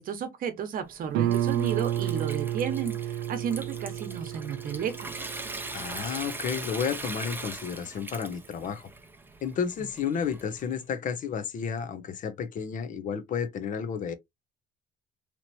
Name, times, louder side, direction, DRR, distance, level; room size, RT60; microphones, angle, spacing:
voice 1, 0.0-5.1, right 7 dB, 55° right, 0.9 m, -33 dB
Water tap faucet / Sink (filling or washing) / Trickle dribble, 0.8-10.8, right 2 dB, 10° right, 0.6 m, -41 dB
Guitar, 1.1-6.6, right 12 dB, 90° right, 0.4 m, -31 dB
voice 2, 5.7-8.9 9.4-14.2, left 7 dB, 50° left, 0.6 m, -32 dB
2.9 x 2.9 x 2.6 m
cardioid pair, 110°, 17 cm